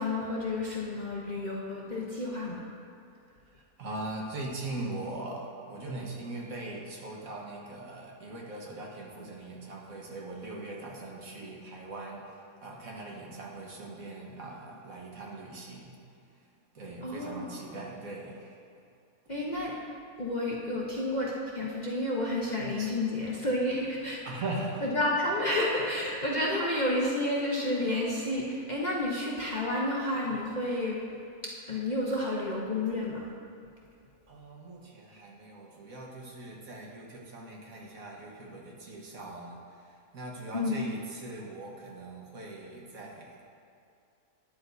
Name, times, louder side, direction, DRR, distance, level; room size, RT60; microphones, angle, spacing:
voice 1, 0.0-2.6 17.0-17.6 19.3-19.7 20.2-24.2 24.8-31.0 31.4-33.2 40.5-40.8, left 1 dB, 35° left, -5 dB, 0.8 m, -30 dB
voice 2, 3.5-16.0 16.7-18.6 22.6-22.9 23.5-23.7 24.2-24.9 34.3-43.4, right 2 dB, 60° right, -2 dB, 1.6 m, -41 dB
12.5 x 10.5 x 2.7 m, 2.4 s
omnidirectional pair, 1.7 m